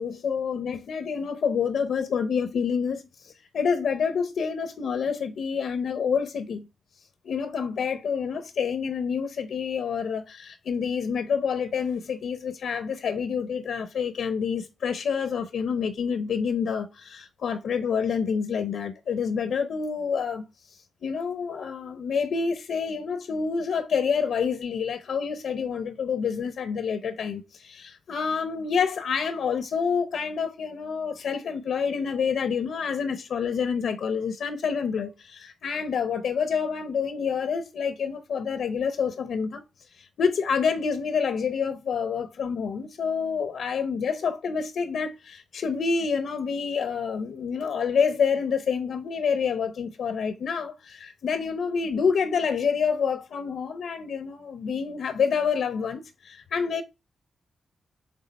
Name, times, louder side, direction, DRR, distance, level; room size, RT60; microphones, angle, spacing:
voice 1, 0.0-6.7 7.2-20.4 21.0-39.6 39.9-56.8, left 6 dB, 80° left, 0.7 m, -28 dB
6.3 x 3.7 x 4.1 m
wide cardioid pair, 125°, 0 cm